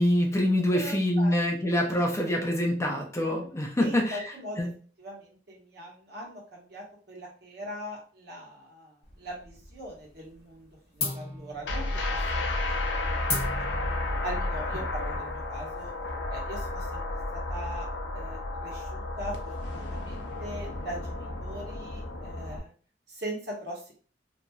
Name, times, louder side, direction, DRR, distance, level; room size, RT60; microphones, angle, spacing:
voice 1, 0.0-4.3 4.6-4.7, left 1 dB, 15° left, 2 dB, 0.4 m, -25 dB
voice 2, 0.7-1.3 3.8-4.6 5.0-10.7 10.9-12.5 13.0-13.3 13.7-13.9 14.2-15.9 16.3-17.0 17.3-17.9 18.1-22.7 23.1-23.9, equal, 60° right, -2 dB, 1.0 m, -41 dB
sound 1, 9.0-9.9 10.2-10.6 11.0-16.1, left 3 dB, 35° left, 0.9 m, -37 dB
sound 2, 11.6-22.6, left 2 dB, 85° left, 0.6 m, -32 dB
2.9 x 2.6 x 2.2 m, 0.41 s
head